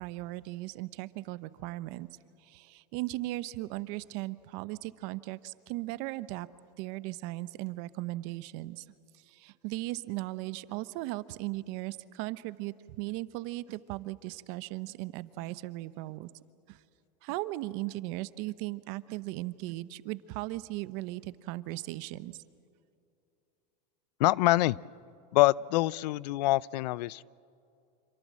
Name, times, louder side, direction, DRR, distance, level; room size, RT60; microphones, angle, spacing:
voice 1, 0.0-2.1 2.4-6.5 6.8-8.8 9.2-16.3 16.7-16.8 17.2-22.4, right 18 dB, 55° right, 15 dB, 0.9 m, -37 dB
voice 2, 24.2-24.8 25.3-27.2, left 18 dB, 75° left, 23 dB, 0.5 m, -25 dB
27.0 x 24.5 x 7.5 m, 2.6 s
supercardioid pair, 145°, 21 cm